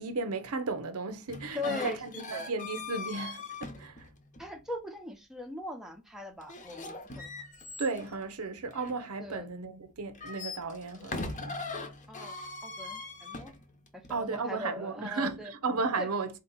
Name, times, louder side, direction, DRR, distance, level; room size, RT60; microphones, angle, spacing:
voice 1, 0.0-4.1 7.8-11.6 14.1-16.3, right 3 dB, 90° right, 0.8 m, -34 dB
sound 1, 1.3-4.6 6.4-9.5 10.0-14.2, left 3 dB, 35° left, 0.8 m, -41 dB
voice 2, 1.5-2.5 4.4-7.3 9.2-9.5 12.1-12.3 12.6-13.5 13.9-15.5 16.0-16.1, left 2 dB, ahead, 0.6 m, -40 dB
4.3 x 2.8 x 3.9 m
head